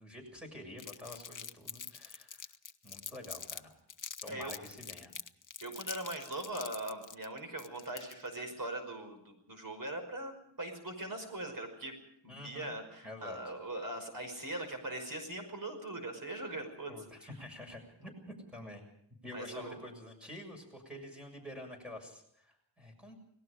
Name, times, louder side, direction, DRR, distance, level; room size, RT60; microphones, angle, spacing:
voice 1, 0.0-2.5 2.8-3.8 4.2-5.1 12.3-12.8 13.0-13.4 16.9-18.8 19.2-23.1, left 1 dB, ahead, 2 dB, 7.2 m, -48 dB
Crumpling crinkling, 0.8-3.6 3.9-8.3, left 6 dB, 45° left, 0.9 m, -45 dB
voice 2, 5.6-12.0 12.2-16.9 19.3-19.8, right 1 dB, 45° right, 5 dB, 5.7 m, -41 dB
29.5 x 19.0 x 5.1 m, 0.70 s
wide cardioid pair, 125°, 44 cm